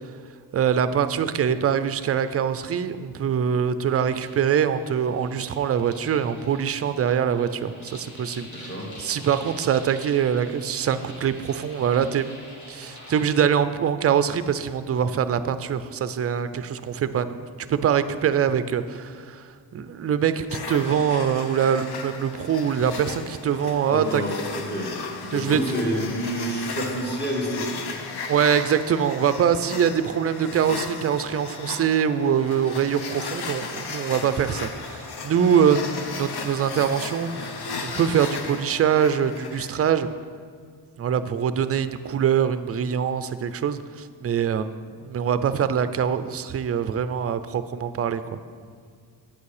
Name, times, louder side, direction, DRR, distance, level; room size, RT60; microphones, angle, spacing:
voice 1, 0.5-8.7 9.0-12.3 12.7-17.4 17.7-19.4 19.7-24.2 25.3-25.6 28.3-37.6 37.8-40.1 41.0-48.2, right 8 dB, 35° right, 12 dB, 0.4 m, -23 dB
sound 1, 3.9-13.2, left 1 dB, 45° left, 1.7 m, -46 dB
voice 2, 8.5-9.0 23.8-28.1, equal, 25° left, -1 dB, 1.7 m, -29 dB
sound 2, 20.5-39.9, left 4 dB, 65° left, 0.9 m, -36 dB
8.7 x 8.2 x 4.9 m, 2.1 s
wide cardioid pair, 155°, 42 cm